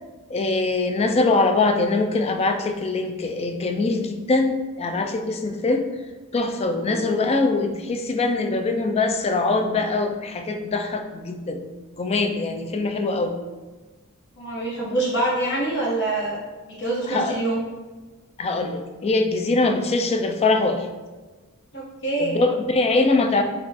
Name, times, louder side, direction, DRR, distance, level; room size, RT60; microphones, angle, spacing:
voice 1, 0.3-5.9 6.3-11.6 11.9-13.3 17.1-17.3 18.4-20.9 22.2-23.4, left 3 dB, 30° left, 5 dB, 0.3 m, -23 dB
voice 2, 14.3-17.6 21.7-22.4, right 2 dB, 55° left, -4 dB, 1.2 m, -25 dB
4.4 x 2.4 x 4.1 m, 1.3 s
head